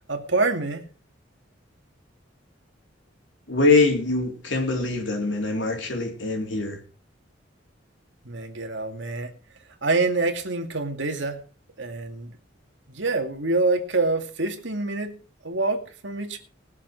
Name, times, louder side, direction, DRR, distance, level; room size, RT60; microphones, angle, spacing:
voice 1, 0.1-0.8 8.2-9.3 9.8-11.4 11.8-12.3 12.9-16.4, right 3 dB, 75° right, 2.3 m, -26 dB
voice 2, 3.5-6.8, left 3 dB, 75° left, 3.6 m, -23 dB
20.5 x 7.3 x 4.7 m
head